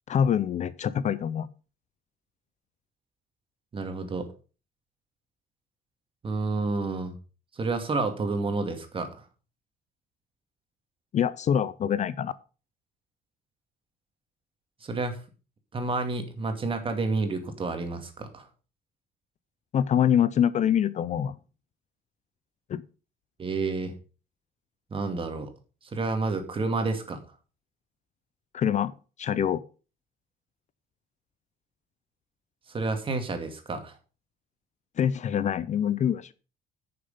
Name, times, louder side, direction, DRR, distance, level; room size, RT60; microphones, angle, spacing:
voice 1, 0.1-1.5 11.1-12.3 19.7-21.3 22.7-22.8 28.5-28.9 29.2-29.6 35.0-36.3, left 9 dB, 45° left, 0.6 m, -25 dB
voice 2, 3.7-4.3 6.2-7.2 7.5-9.1 14.8-15.2 15.7-18.5 23.4-23.9 24.9-25.5 25.8-27.2 32.7-34.0, right 3 dB, 30° right, 2.4 m, -30 dB
9.6 x 6.7 x 5.5 m
cardioid pair, 110°, 17 cm